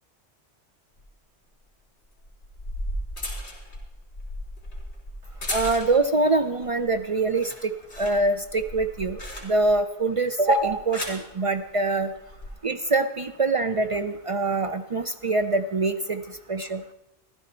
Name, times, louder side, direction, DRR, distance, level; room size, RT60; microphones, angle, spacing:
sound 1, 1.0-1.1 2.2-6.2 6.6-7.0 7.3-9.8 10.6-11.3 12.2-12.5, left 1 dB, 65° left, 3.8 m, -35 dB
voice 1, 5.5-7.7 8.0-12.1 12.6-16.2 16.5-16.8, right 2 dB, 50° right, 8 dB, 0.4 m, -24 dB
15.0 x 12.0 x 4.3 m, 0.92 s
omnidirectional pair, 1.2 m